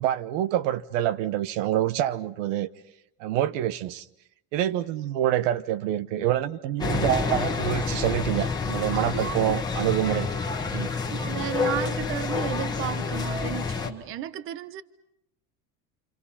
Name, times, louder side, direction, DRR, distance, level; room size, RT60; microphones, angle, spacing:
voice 1, 0.0-2.7 3.2-4.1 4.5-10.3 10.7-10.9, right 12 dB, 80° right, 1.1 m, -26 dB
sound 1, 6.8-13.9, left 4 dB, 10° left, 1.5 m, -28 dB
voice 2, 8.9-9.5 9.8-10.2 11.1-14.8, right 11 dB, 35° right, 0.9 m, -34 dB
28.5 x 27.0 x 5.7 m
cardioid pair, 165°, 36 cm